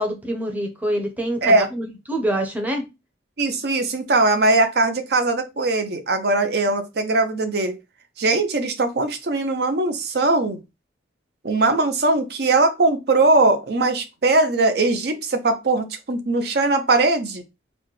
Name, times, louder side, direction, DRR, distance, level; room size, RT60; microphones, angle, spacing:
voice 1, 0.0-2.8, equal, 10° right, 0.7 m, -26 dB
voice 2, 3.4-7.8 8.2-10.6 11.4-17.4, right 2 dB, 55° right, 0.6 m, -20 dB
4.1 x 2.2 x 3.1 m
head